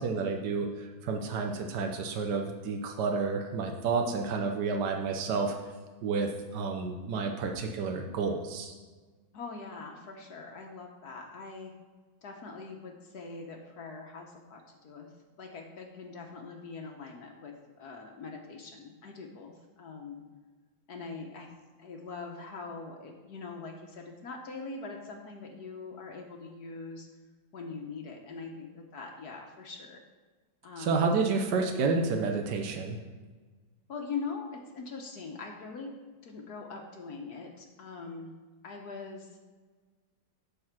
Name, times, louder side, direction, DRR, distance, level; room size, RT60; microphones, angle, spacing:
voice 1, 0.0-5.5 6.0-8.7 30.8-33.0, right 4 dB, 70° right, 3 dB, 1.3 m, -30 dB
voice 2, 9.3-11.7 12.2-15.1 15.4-20.2 20.9-21.5 21.8-27.1 27.5-30.0 30.6-31.1 33.9-38.3 38.6-39.4, left 4 dB, 65° left, 2 dB, 1.4 m, -42 dB
11.5 x 4.1 x 5.9 m, 1.4 s
omnidirectional pair, 1.9 m